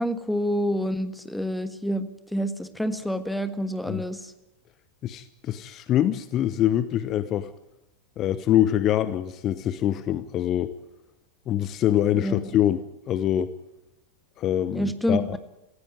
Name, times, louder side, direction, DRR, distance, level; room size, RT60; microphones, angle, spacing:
voice 1, 0.0-4.3 12.2-12.4 14.7-15.4, equal, 5° left, 11 dB, 1.5 m, -28 dB
voice 2, 5.0-7.5 8.2-10.7 11.5-13.5 14.4-15.4, left 11 dB, 35° left, 15 dB, 0.9 m, -24 dB
18.5 x 15.5 x 9.5 m, 0.93 s
figure-of-eight pair, 90°, 0 cm